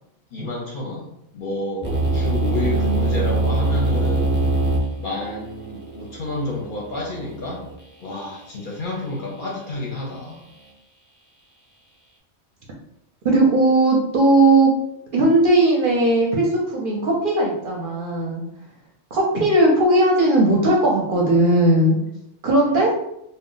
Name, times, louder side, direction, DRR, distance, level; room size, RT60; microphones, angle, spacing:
voice 1, 0.3-4.3 4.9-7.7 8.0-10.4, left 1 dB, 55° left, -2 dB, 0.6 m, -30 dB
sound 1, 1.8-7.7, right 2 dB, 20° left, 0.3 m, -23 dB
voice 2, 13.2-14.7 15.1-18.4 19.1-22.0 22.4-22.9, right 2 dB, 60° right, -2 dB, 0.6 m, -17 dB
2.2 x 2.0 x 3.7 m, 0.78 s
omnidirectional pair, 1.2 m